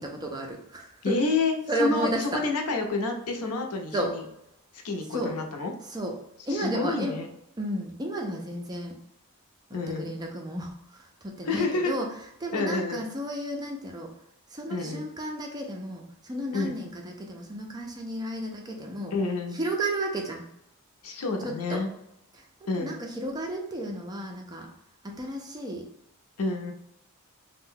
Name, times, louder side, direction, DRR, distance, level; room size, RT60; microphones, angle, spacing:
voice 1, 0.0-1.2 1.7-2.4 3.9-4.2 5.1-5.4 5.9-6.2 6.5-7.1 7.6-9.0 9.7-12.1 12.4-14.1 14.5-19.1 19.5-20.5 21.4-21.8 22.3-22.5 22.8-24.7 25.0-25.9, right 1 dB, 20° right, 1 dB, 0.4 m, -33 dB
voice 2, 1.0-4.2 4.7-5.7 6.5-7.3 9.7-10.1 11.4-11.9 12.5-13.0 14.7-15.1 16.5-16.8 19.1-19.6 21.0-21.9 22.7-22.9 26.4-26.7, left 3 dB, 85° left, 3 dB, 0.6 m, -29 dB
2.6 x 2.1 x 3.6 m, 0.78 s
head